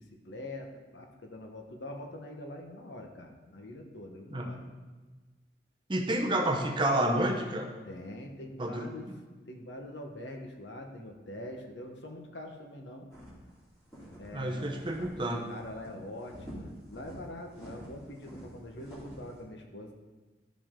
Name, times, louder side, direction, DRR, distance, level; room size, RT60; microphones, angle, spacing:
voice 1, 0.0-4.6 7.9-9.1 9.4-13.1 14.2-20.0, left 1 dB, 90° left, 3 dB, 1.0 m, -44 dB
voice 2, 5.9-7.7 8.6-9.2 14.3-15.4, right 1 dB, 25° right, 2 dB, 0.8 m, -30 dB
sound 1, 13.1-13.5 13.9-14.3 14.8-15.3 15.5-15.9 16.2-17.2 17.5-19.3, equal, 15° left, 2.7 m, -47 dB
12.0 x 5.2 x 3.7 m, 1.3 s
head